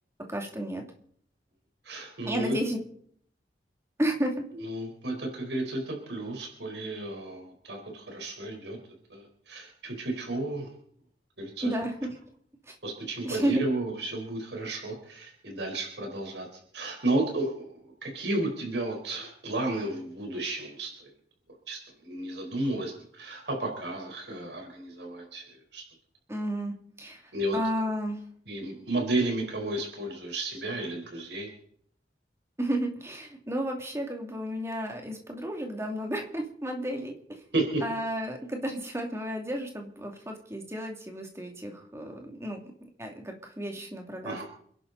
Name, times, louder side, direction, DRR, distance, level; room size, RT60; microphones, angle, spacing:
voice 1, 0.2-0.8 2.2-2.8 4.0-4.4 11.6-12.2 12.6-12.7 13.2-13.6 26.3-27.2 27.5-28.2 32.6-37.4 37.8-42.7 43.0-44.4, right 1 dB, 15° right, 2 dB, 2.6 m, -32 dB
voice 2, 1.8-2.6 4.6-8.8 9.1-10.7 11.4-11.7 12.8-16.5 16.7-21.1 21.7-25.4 25.7-25.8 27.3-27.6 28.5-31.5 37.5-37.8 44.2-44.4, right 2 dB, 80° right, 1 dB, 4.6 m, -32 dB
28.5 x 11.5 x 4.1 m, 0.63 s
head